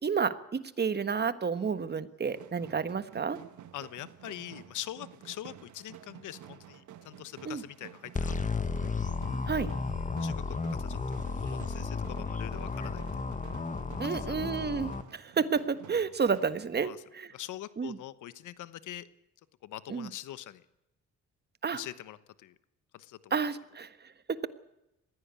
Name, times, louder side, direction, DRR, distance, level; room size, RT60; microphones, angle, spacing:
voice 1, 0.0-3.4 7.4-7.6 9.5-9.7 14.0-17.3 17.8-18.0 19.9-20.1 21.6-21.8 23.3-24.5, right 5 dB, 35° right, 13 dB, 1.4 m, -31 dB
sound 1, 2.2-16.6, right 10 dB, 75° right, 1.6 m, -51 dB
voice 2, 3.7-8.6 10.2-11.0 11.2-13.2 14.1-14.3 16.8-17.0 17.3-19.1 19.6-20.6 21.7-22.5 22.9-23.4, left 13 dB, 80° left, 15 dB, 1.2 m, -43 dB
sound 2, 8.2-15.0, left 4 dB, 25° left, 1.4 m, -33 dB
20.5 x 16.0 x 8.3 m, 0.89 s
cardioid pair, 90°, 30 cm